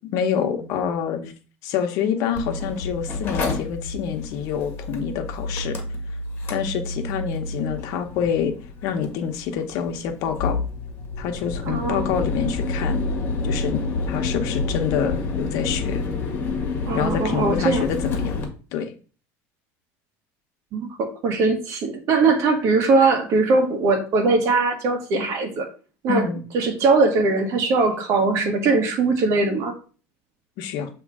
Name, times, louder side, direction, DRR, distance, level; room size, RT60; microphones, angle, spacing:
voice 1, 0.0-1.3 1.6-5.8 6.5-8.5 8.8-10.6 11.2-13.0 13.4-13.8 14.1-16.0 16.9-18.4 18.7-18.9 26.1-26.4 30.6-30.9, left 7 dB, 60° left, 6 dB, 1.0 m, -26 dB
Mechanical fan, 2.4-18.4, left 3 dB, 30° left, 1.7 m, -29 dB
voice 2, 11.6-12.1 16.8-17.9 20.7-25.7 26.0-26.3 26.5-29.7, right 3 dB, 45° right, 5 dB, 1.5 m, -21 dB
7.4 x 3.2 x 4.8 m, 0.38 s
cardioid pair, 160°, 7 cm